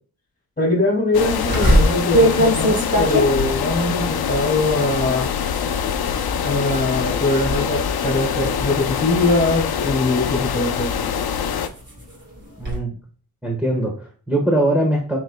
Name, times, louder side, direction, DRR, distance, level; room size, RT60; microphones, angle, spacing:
voice 1, 0.6-5.3 6.4-10.9, left 2 dB, 25° left, -2 dB, 2.5 m, -21 dB
sound 1, 1.1-11.7, left 7 dB, 85° left, 0.7 m, -24 dB
sound 2, 1.5-6.9 7.2-7.6 8.0-10.0 10.6-12.8, equal, 30° right, 2.8 m, -22 dB
voice 2, 12.6-12.9 13.4-15.2, right 1 dB, 5° right, -3 dB, 1.3 m, -21 dB
11.5 x 4.1 x 2.2 m, 0.41 s
wide cardioid pair, 135°, 36 cm